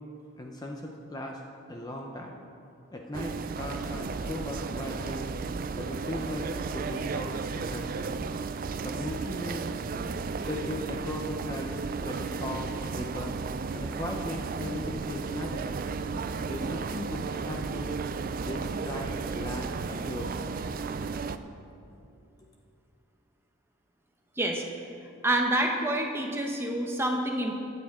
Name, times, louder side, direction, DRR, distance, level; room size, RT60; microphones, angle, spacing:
voice 1, 0.4-1.4 1.7-2.4 2.9-5.3 5.8-8.2 8.7-9.7 10.4-12.6 12.9-13.4 13.7-15.8 16.4-18.0 18.4-20.5, left 1 dB, 20° left, 1 dB, 0.6 m, -38 dB
sound 1, 3.1-21.4, right 4 dB, 40° right, 0.3 m, -34 dB
voice 2, 25.2-27.5, right 1 dB, 10° right, 2 dB, 0.8 m, -27 dB
15.5 x 9.5 x 3.7 m, 2.6 s
head